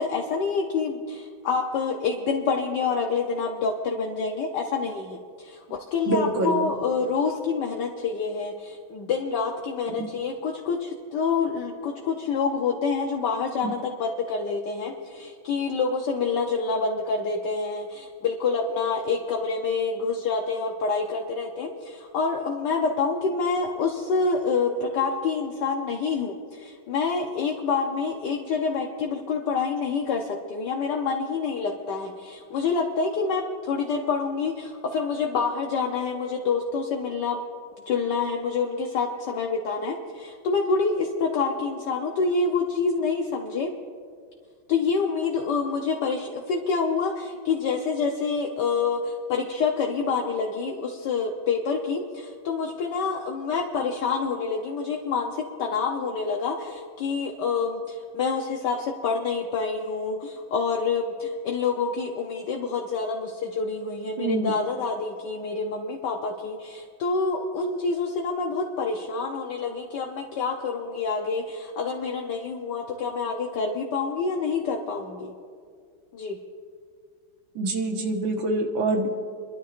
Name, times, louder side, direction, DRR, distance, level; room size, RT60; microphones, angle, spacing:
voice 1, 0.0-37.4 37.9-43.7 44.7-75.3 76.1-76.4, left 4 dB, 65° left, 1 dB, 1.4 m, -27 dB
voice 2, 6.1-6.7 9.9-10.1 13.6-13.7 64.2-64.5 77.6-79.1, right 2 dB, 80° right, 2 dB, 2.2 m, -26 dB
29.5 x 12.0 x 2.5 m, 2.1 s
omnidirectional pair, 2.2 m